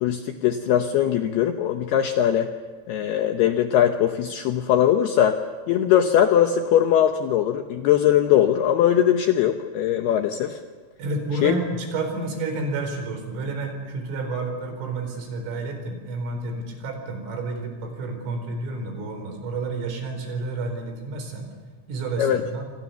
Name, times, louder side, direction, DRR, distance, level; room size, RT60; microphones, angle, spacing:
voice 1, 0.0-2.5 2.9-5.4 5.7-10.6 11.4-11.5 22.2-22.4, left 10 dB, 80° left, 6 dB, 2.3 m, -20 dB
voice 2, 11.0-21.5 21.9-22.6, right 3 dB, 75° right, 5 dB, 7.1 m, -30 dB
28.5 x 25.0 x 7.0 m, 1.5 s
omnidirectional pair, 5.8 m